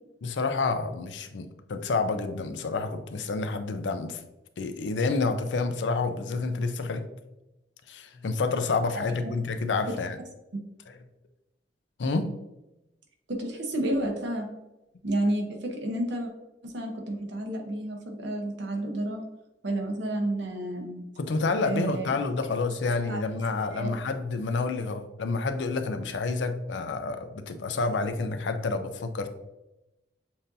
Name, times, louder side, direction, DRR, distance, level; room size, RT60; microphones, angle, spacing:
voice 1, 0.2-4.2 4.6-7.0 7.9-10.2 10.9-11.0 12.0-12.3 21.2-29.3, left 3 dB, 85° left, 8 dB, 0.5 m, -29 dB
voice 2, 13.3-14.5 15.0-16.3 16.6-19.2 19.6-21.0 21.6-22.1 23.1-23.2 23.7-23.9, right 1 dB, 80° right, 2 dB, 0.9 m, -30 dB
7.1 x 2.6 x 2.6 m, 0.95 s
head